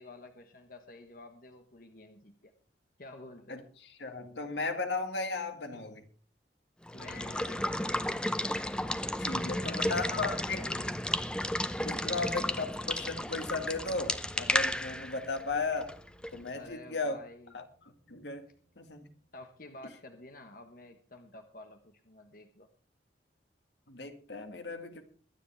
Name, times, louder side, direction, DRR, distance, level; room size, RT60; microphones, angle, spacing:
voice 1, 0.0-2.5 3.0-3.7 5.7-6.0 6.9-8.3 9.4-11.0 12.0-12.7 16.5-17.6 19.3-22.7, left 2 dB, 50° left, 5 dB, 1.3 m, -50 dB
voice 2, 4.0-6.0 9.2-10.7 11.8-16.0 16.3-17.2 17.5-17.6 18.1-18.5 18.8-19.1 23.9-25.0, left 3 dB, 75° left, 6 dB, 2.0 m, -35 dB
Water / Water tap faucet / Liquid, 6.9-16.5, left 1 dB, 5° left, 0.5 m, -33 dB
sound 1, 7.0-20.3, right 1 dB, 85° right, 7.0 m, -60 dB
23.0 x 9.7 x 3.5 m, 0.41 s
head